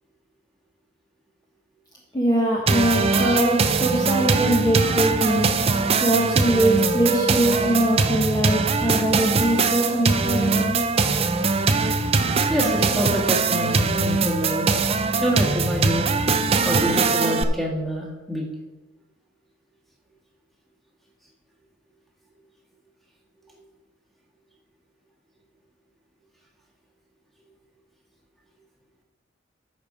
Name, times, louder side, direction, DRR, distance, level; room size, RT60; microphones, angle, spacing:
voice 1, 2.1-5.5 6.0-10.8, right 1 dB, 20° left, -3 dB, 1.3 m, -22 dB
sound 1, 2.7-17.4, right 4 dB, 30° right, 0.5 m, -22 dB
voice 2, 12.5-14.8 15.2-16.1 16.6-18.5 23.5-23.6, equal, ahead, -3 dB, 1.9 m, -27 dB
13.0 x 5.2 x 5.0 m, 1.2 s
head